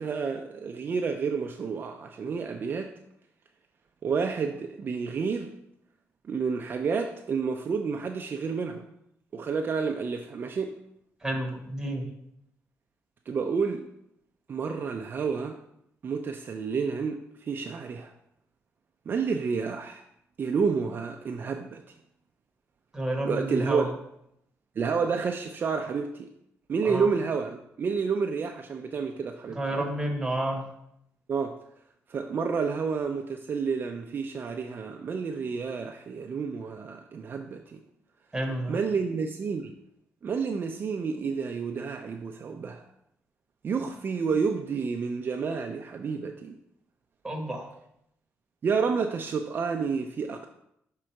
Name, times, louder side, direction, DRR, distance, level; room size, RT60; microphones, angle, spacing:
voice 1, 0.0-2.9 4.0-5.5 6.3-8.8 9.3-10.8 13.3-13.9 14.5-15.6 16.0-18.1 19.1-20.0 20.4-21.8 23.2-23.9 24.8-26.3 26.7-29.8 31.3-31.6 32.1-37.8 38.7-39.7 40.2-42.9 43.6-46.6 48.6-50.5, right 5 dB, 40° right, 4 dB, 0.4 m, -30 dB
voice 2, 11.2-12.1 22.9-23.9 26.8-27.1 29.5-30.7 38.3-38.8 47.2-47.7, right 1 dB, 10° right, 0 dB, 1.2 m, -30 dB
6.2 x 3.7 x 4.4 m, 0.77 s
cardioid pair, 130°, 5 cm